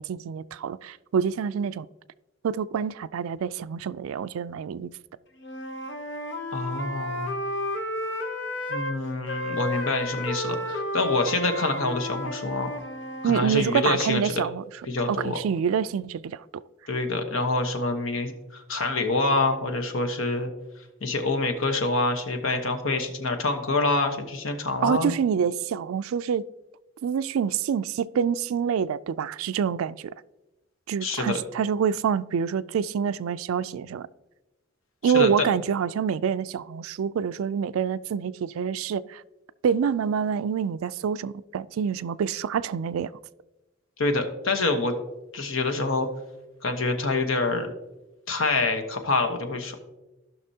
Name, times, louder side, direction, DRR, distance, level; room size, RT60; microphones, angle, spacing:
voice 1, 0.0-1.9 2.4-4.9 13.2-14.6 15.1-16.6 24.8-26.5 27.0-30.1 30.9-34.1 35.0-39.2 39.6-43.1, right 7 dB, 85° right, 0.3 m, -26 dB
Wind instrument woodwind instrument, 5.4-9.0 9.3-13.5, left 1 dB, 55° left, 0.9 m, -32 dB
voice 2, 6.5-7.3 8.7-12.7 13.2-14.3 14.9-15.4 16.9-20.5 21.0-25.1 31.0-31.4 35.0-35.5 44.0-44.9 45.3-46.1 46.6-47.7 48.3-49.7, left 3 dB, 80° left, 1.1 m, -26 dB
15.5 x 5.9 x 2.8 m
head